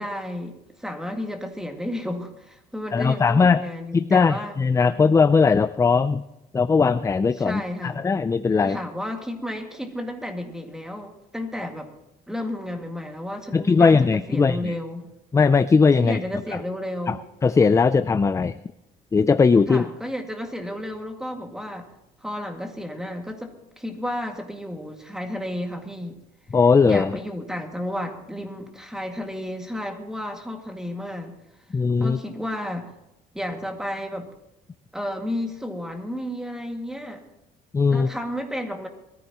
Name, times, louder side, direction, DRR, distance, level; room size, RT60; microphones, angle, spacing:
voice 1, 0.0-4.6 7.3-8.0 8.6-11.9 12.3-15.1 16.0-17.2 19.7-21.9 22.2-26.2 26.8-31.4 32.0-32.9 33.3-34.3 34.9-37.2 37.9-38.9, left 1 dB, 5° right, 4 dB, 2.1 m, -32 dB
voice 2, 2.9-3.6 3.9-6.2 6.5-8.8 13.5-14.7 15.3-16.2 17.1-17.2 17.4-18.5 19.1-19.8 26.5-27.2 31.7-32.2 37.7-38.1, left 5 dB, 20° left, 13 dB, 0.4 m, -19 dB
21.5 x 14.5 x 3.0 m, 0.87 s
cardioid pair, 110°, 17 cm